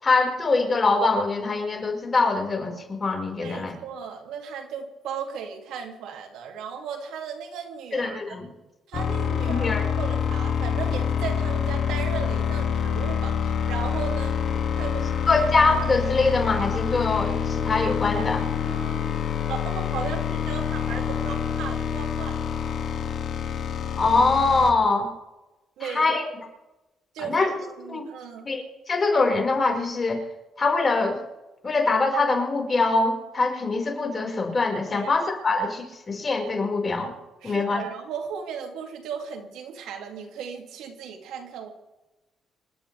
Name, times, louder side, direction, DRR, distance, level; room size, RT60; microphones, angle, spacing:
voice 1, 0.0-3.7 7.9-8.5 9.5-9.8 15.3-18.4 24.0-25.1 25.8-26.3 27.3-27.5 27.9-28.0 28.4-30.2 30.6-31.2 31.6-37.1 37.4-37.8, left 3 dB, 30° left, 0 dB, 5.1 m, -23 dB
voice 2, 3.4-8.2 8.9-14.4 14.8-15.4 18.5-19.2 19.5-22.4 25.8-26.1 27.1-28.5 35.0-35.1 37.4-41.7, right 6 dB, 90° right, 2 dB, 2.7 m, -36 dB
sound 1, 8.9-24.7, left 7 dB, 65° left, 2.3 m, -27 dB
27.0 x 13.0 x 3.5 m, 1.0 s
cardioid pair, 90°, 0 cm